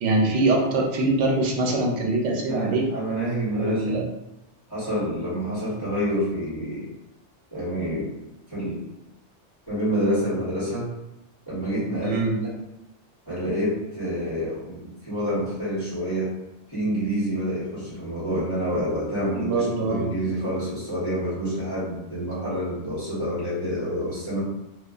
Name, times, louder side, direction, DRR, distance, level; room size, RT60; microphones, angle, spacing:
voice 1, 0.0-2.9 3.5-4.0 12.0-12.3 19.3-20.1, right 2 dB, 85° right, 0 dB, 0.9 m, -23 dB
voice 2, 2.5-4.1 4.7-6.9 7.5-8.1 8.5-8.9 9.7-10.9 11.5-12.5 13.3-16.4 16.7-24.4, equal, 20° left, -13 dB, 1.2 m, -28 dB
2.4 x 2.3 x 2.3 m, 0.93 s
omnidirectional pair, 1.2 m